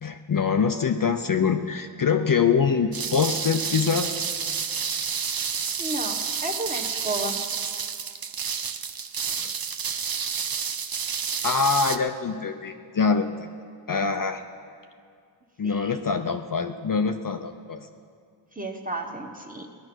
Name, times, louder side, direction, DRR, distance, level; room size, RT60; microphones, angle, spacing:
voice 1, 0.0-4.2 9.4-9.5 11.4-13.5 13.9-14.4 15.6-17.9, left 5 dB, 45° left, 6 dB, 0.6 m, -24 dB
sound 1, 2.9-12.0, right 6 dB, 50° right, 0.7 m, -30 dB
voice 2, 5.8-7.4 15.6-15.9 18.5-19.7, right 1 dB, 20° right, 2 dB, 1.5 m, -32 dB
18.5 x 10.5 x 6.2 m, 2.2 s
wide cardioid pair, 95°, 46 cm